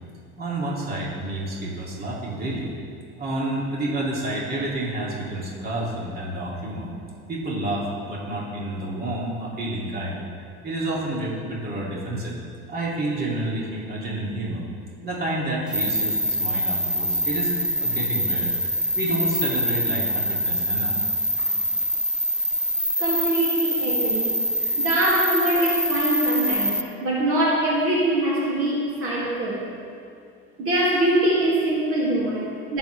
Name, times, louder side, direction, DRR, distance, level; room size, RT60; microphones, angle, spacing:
voice 1, 0.4-2.7 3.2-6.9 7.3-10.2 10.6-12.3 12.7-14.6 15.0-17.5 17.8-18.5 18.9-20.9 21.4-21.5, right 1 dB, 35° right, -5 dB, 2.6 m, -29 dB
sound 1, 15.7-26.8, equal, 5° right, 0.3 m, -24 dB
voice 2, 23.0-29.7 30.6-32.8, right 1 dB, 50° right, -5 dB, 2.4 m, -23 dB
19.5 x 7.3 x 3.3 m, 2.4 s
cardioid pair, 135°, 29 cm